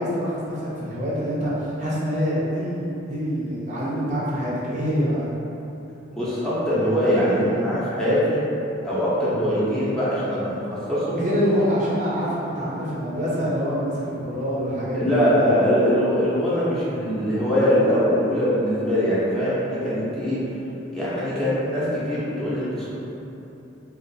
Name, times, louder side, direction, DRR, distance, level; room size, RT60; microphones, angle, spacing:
voice 1, 0.0-5.3 11.1-15.5, equal, 35° right, -8 dB, 0.6 m, -25 dB
voice 2, 6.1-8.4 8.8-10.6 10.9-11.2 14.9-20.4 20.9-22.9, equal, 5° left, -11 dB, 0.6 m, -22 dB
2.7 x 2.4 x 3.9 m, 3.0 s
head